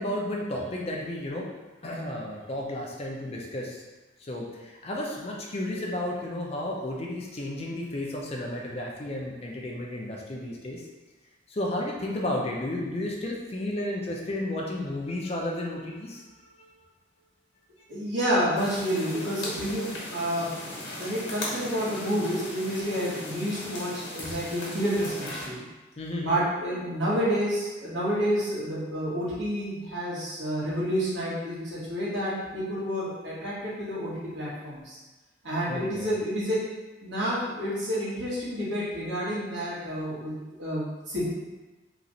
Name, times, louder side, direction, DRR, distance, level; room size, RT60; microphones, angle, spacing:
voice 1, 0.0-1.5 1.8-3.8 4.2-10.8 11.5-16.3 16.6-16.7 26.0-26.4 35.7-36.1, left 1 dB, 30° left, -2 dB, 0.4 m, -32 dB
voice 2, 17.9-25.6 26.2-35.0 35.4-36.6 37.0-40.3 40.6-41.2, equal, 70° right, -8 dB, 1.3 m, -29 dB
sound 1, 18.5-25.5, left 1 dB, 80° left, 1.0 m, -38 dB
3.0 x 2.5 x 3.9 m, 1.2 s
head